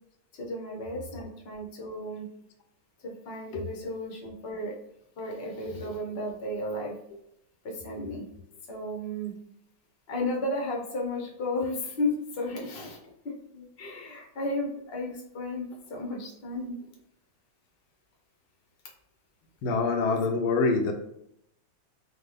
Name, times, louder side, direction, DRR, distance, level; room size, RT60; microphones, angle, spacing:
voice 1, 0.3-2.3 3.0-4.8 5.2-7.0 7.6-8.2 8.7-9.3 10.1-13.0 13.2-16.8, left 1 dB, 45° left, -1 dB, 0.9 m, -34 dB
voice 2, 19.6-20.9, left 3 dB, 75° left, 3 dB, 1.5 m, -26 dB
4.4 x 2.3 x 3.3 m, 0.76 s
omnidirectional pair, 2.2 m